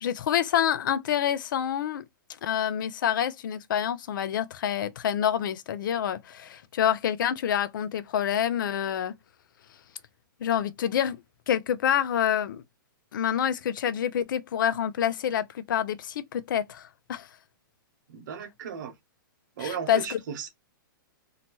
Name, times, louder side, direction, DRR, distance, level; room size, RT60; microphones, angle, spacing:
voice 1, 0.0-2.0 2.4-9.1 10.4-11.2 11.5-12.6 13.1-17.3 19.6-20.2, left 9 dB, 65° left, 0.5 m, -27 dB
voice 2, 18.1-18.9 19.6-20.5, right 7 dB, 60° right, 1.1 m, -35 dB
2.8 x 2.2 x 2.9 m
hypercardioid pair, 145°, 11 cm